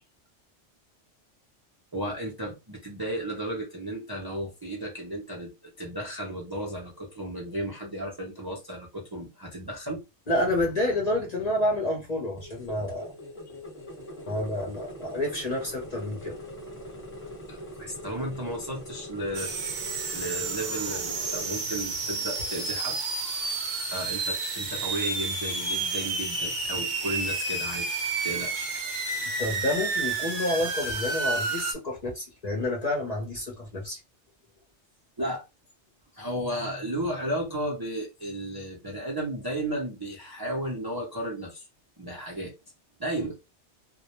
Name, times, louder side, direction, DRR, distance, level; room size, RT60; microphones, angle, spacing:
voice 1, 1.9-10.0 17.5-19.9 20.1-23.0 23.9-27.9 28.2-28.7 35.2-35.4 36.1-41.6 42.0-42.5 43.0-43.4, right 1 dB, 35° right, 0.4 m, -34 dB
voice 2, 10.3-13.1 14.3-16.4 29.4-34.0, left 1 dB, 45° left, 0.6 m, -29 dB
sound 1, 12.4-21.5, left 1 dB, 10° left, 0.9 m, -42 dB
sound 2, 19.3-31.7, right 3 dB, 65° right, 0.8 m, -30 dB
2.1 x 2.0 x 2.9 m
omnidirectional pair, 1.2 m